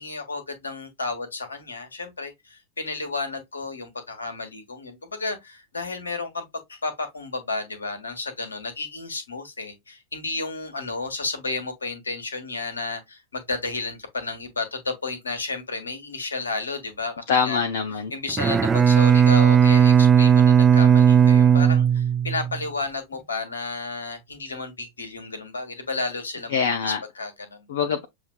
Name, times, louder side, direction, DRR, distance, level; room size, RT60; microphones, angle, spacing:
voice 1, 0.0-6.4 6.7-17.6 18.1-27.7, left 3 dB, 75° left, 1.3 m, -32 dB
voice 2, 17.3-18.1 26.5-27.0 27.7-28.0, left 6 dB, 55° left, 0.6 m, -24 dB
Bowed string instrument, 18.3-22.6, right 8 dB, 20° right, 0.3 m, -16 dB
7.0 x 2.6 x 2.2 m
figure-of-eight pair, 90°, 0 cm